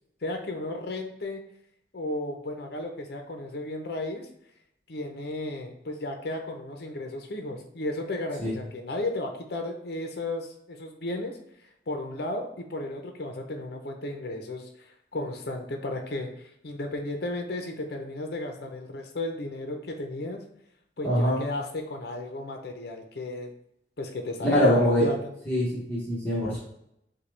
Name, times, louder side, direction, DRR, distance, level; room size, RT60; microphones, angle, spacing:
voice 1, 0.2-1.4 1.9-4.3 4.9-11.4 11.9-20.4 21.0-23.6 24.0-25.3, left 2 dB, 60° left, 4 dB, 0.6 m, -34 dB
voice 2, 21.0-21.4 24.4-25.1 25.5-26.6, equal, 10° left, -8 dB, 1.0 m, -23 dB
6.7 x 2.3 x 3.2 m, 0.76 s
head